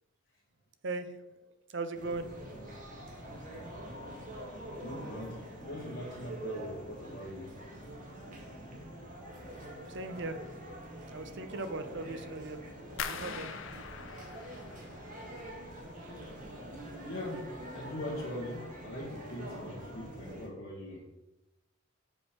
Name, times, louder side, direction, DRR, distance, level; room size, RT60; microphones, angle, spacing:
voice 1, 0.8-2.3 9.9-10.4 11.1-12.6 13.0-13.6 16.0-16.7, right 3 dB, 60° right, 10 dB, 0.7 m, -39 dB
sound 1, 1.9-20.5, right 1 dB, 40° right, 1.8 m, -45 dB
voice 2, 4.8-7.6 17.0-21.1, left 1 dB, 55° left, -5 dB, 1.4 m, -41 dB
sound 2, 13.0-15.9 16.1-16.8 17.2-17.6 18.0-18.2, left 7 dB, 75° left, 0.6 m, -43 dB
6.5 x 5.3 x 5.7 m, 1.0 s
head